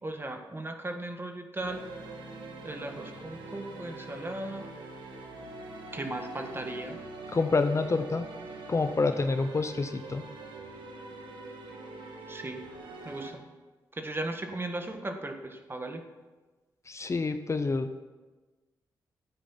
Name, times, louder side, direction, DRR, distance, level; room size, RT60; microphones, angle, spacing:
voice 1, 0.0-1.9 2.6-4.7 5.9-7.0 12.3-12.7 13.0-13.4 14.0-16.0, right 2 dB, 30° right, 5 dB, 1.7 m, -37 dB
sound 1, 1.6-13.3, right 2 dB, 80° right, 1.9 m, -44 dB
voice 2, 7.3-8.3 8.7-10.2 16.9-18.0, left 3 dB, 35° left, 9 dB, 0.8 m, -28 dB
12.0 x 9.0 x 5.7 m, 1.3 s
cardioid pair, 60°, 8 cm